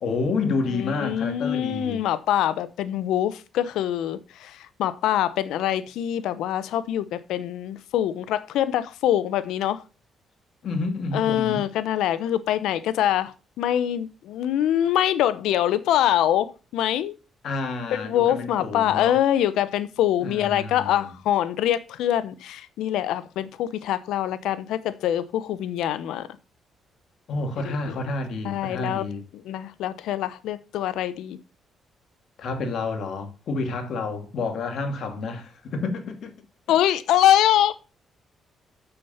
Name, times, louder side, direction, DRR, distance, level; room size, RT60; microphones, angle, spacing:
voice 1, 0.0-2.0 10.6-11.7 17.4-19.2 20.2-21.0 27.3-29.2 32.4-36.3, left 3 dB, 65° left, 2.2 m, -29 dB
voice 2, 0.7-9.8 11.1-17.2 17.9-26.3 28.4-29.0 29.3-31.4 36.7-37.7, left 11 dB, 85° left, 0.8 m, -24 dB
7.2 x 6.8 x 5.6 m
cardioid pair, 90°, 0 cm